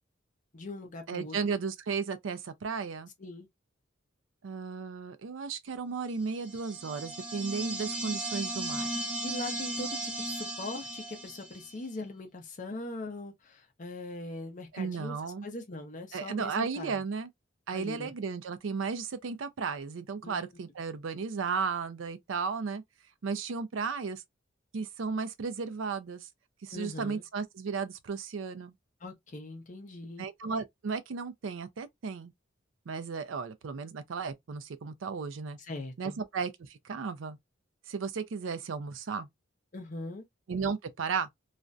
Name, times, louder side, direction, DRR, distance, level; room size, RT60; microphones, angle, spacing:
voice 1, 0.5-1.5 3.2-3.5 9.2-16.9 17.7-18.1 20.2-20.5 26.7-27.2 29.0-30.2 35.6-36.1 39.7-40.2, left 2 dB, 40° left, 0.6 m, -41 dB
voice 2, 1.1-3.1 4.4-8.9 14.7-15.5 16.1-17.3 17.7-22.8 23.2-24.2 24.7-26.3 26.6-28.7 30.2-32.3 32.9-35.6 36.0-37.4 37.9-39.3 40.5-41.3, right 5 dB, 75° right, 0.4 m, -34 dB
sound 1, 6.4-11.8, right 1 dB, 5° right, 0.5 m, -36 dB
2.4 x 2.1 x 2.5 m
head